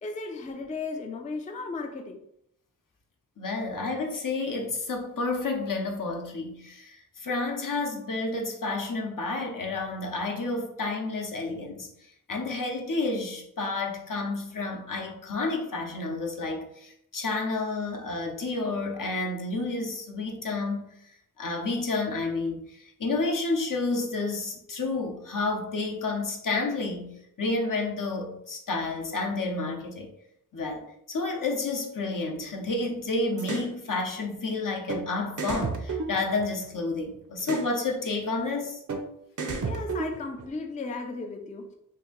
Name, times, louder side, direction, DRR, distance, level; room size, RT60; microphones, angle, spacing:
voice 1, 0.0-2.2 39.6-41.7, left 3 dB, 20° left, 3 dB, 0.4 m, -35 dB
voice 2, 3.4-11.9 12.3-20.9 21.4-30.1 30.5-30.8 31.1-38.8, left 3 dB, 65° left, 1 dB, 0.8 m, -30 dB
sound 1, 33.4-33.7 34.9-35.0 35.4-36.8 37.4-37.7 38.9-39.0 39.4-40.5, right 4 dB, 60° right, 0.6 m, -32 dB
2.8 x 2.5 x 3.8 m, 0.73 s
wide cardioid pair, 80°, 35 cm